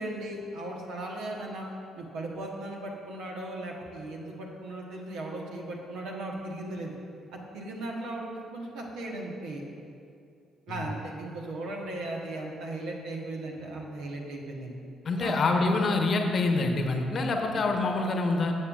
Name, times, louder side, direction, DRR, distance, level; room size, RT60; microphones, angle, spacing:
voice 1, 0.0-1.6 2.0-7.0 7.3-9.6 10.7-14.8 15.2-15.3, right 2 dB, 65° right, -1 dB, 1.1 m, -37 dB
voice 2, 15.0-18.5, left 3 dB, 45° left, 3 dB, 1.0 m, -26 dB
17.5 x 7.3 x 2.4 m, 2.4 s
figure-of-eight pair, 45°, 0 cm